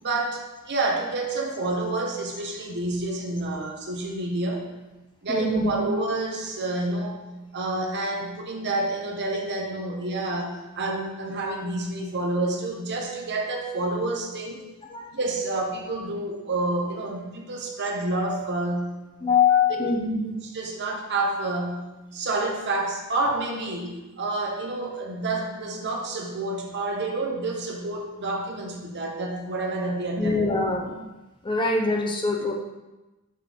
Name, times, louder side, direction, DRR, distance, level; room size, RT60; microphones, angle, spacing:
voice 1, 0.0-4.6 5.2-7.2 7.5-14.6 15.1-18.9 19.5-19.9 20.4-21.8 22.1-30.5, right 2 dB, 50° right, 0 dB, 1.0 m, -29 dB
voice 2, 5.3-5.9 14.9-15.1 19.2-20.3 30.2-31.0 31.4-32.5, left 4 dB, 20° left, 1 dB, 0.7 m, -23 dB
6.4 x 5.9 x 3.5 m, 1.1 s
head